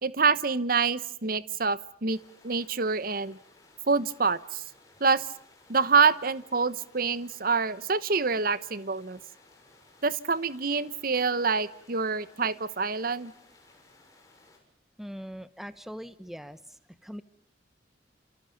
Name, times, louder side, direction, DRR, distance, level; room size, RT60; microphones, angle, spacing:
voice 1, 0.0-2.2 2.4-3.4 3.9-4.6 5.0-5.3 5.7-9.2 10.0-13.3, right 4 dB, 50° right, 15 dB, 1.0 m, -26 dB
sound 1, 2.1-14.6, left 2 dB, 20° left, 6.8 m, -58 dB
voice 2, 15.0-17.2, equal, ahead, 12 dB, 1.0 m, -41 dB
29.5 x 28.0 x 5.2 m, 0.66 s
head